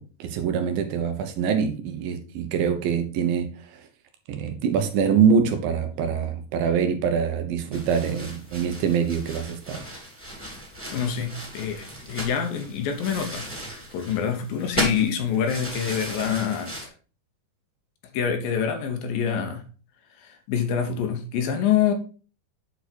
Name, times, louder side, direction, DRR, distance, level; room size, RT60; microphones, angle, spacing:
voice 1, 0.0-3.8 4.3-9.8, right 6 dB, 75° right, 6 dB, 2.5 m, -24 dB
sound 1, 7.7-16.9, equal, 5° right, 1.7 m, -36 dB
voice 2, 10.9-16.9 18.1-19.6 20.2-21.9, left 8 dB, 75° left, 6 dB, 2.6 m, -26 dB
8.1 x 4.6 x 4.5 m, 0.37 s
omnidirectional pair, 4.4 m